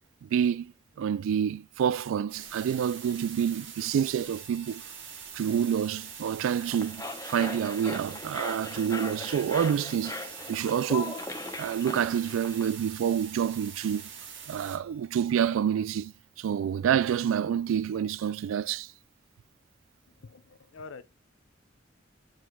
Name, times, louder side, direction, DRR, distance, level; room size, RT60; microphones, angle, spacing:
voice 1, 0.2-0.7 1.0-4.8 5.3-10.2 10.5-11.2 11.6-14.0 14.5-18.9, right 8 dB, 85° right, 0.3 m, -28 dB
sound 1, 2.3-14.8, right 7 dB, 70° right, 1.7 m, -44 dB
Harmonica, 4.2-15.3, right 5 dB, 35° right, 2.4 m, -55 dB
sound 2, 6.5-12.7, left 3 dB, 20° left, 0.7 m, -39 dB
voice 2, 20.1-21.0, left 4 dB, 75° left, 0.6 m, -46 dB
9.2 x 4.8 x 2.3 m
head